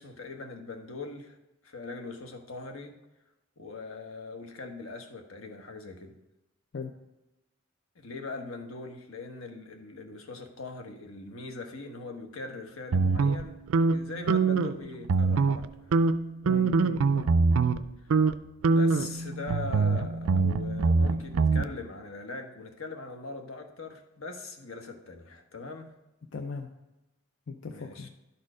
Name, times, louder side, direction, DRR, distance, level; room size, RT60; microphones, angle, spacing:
voice 1, 0.0-1.4 1.6-3.0 3.6-6.1 7.9-13.6 13.9-15.9 18.0-18.1 18.7-25.9 27.7-28.1, left 3 dB, 85° left, 5 dB, 1.1 m, -41 dB
sound 1, 12.9-14.8 15.0-15.7 15.9-17.8 18.1-18.3 18.6-21.6, right 4 dB, 85° right, 0.4 m, -24 dB
voice 2, 16.4-17.3 26.3-26.7 27.5-28.1, left 5 dB, 65° left, 5 dB, 0.6 m, -38 dB
11.5 x 4.4 x 4.9 m, 0.97 s
head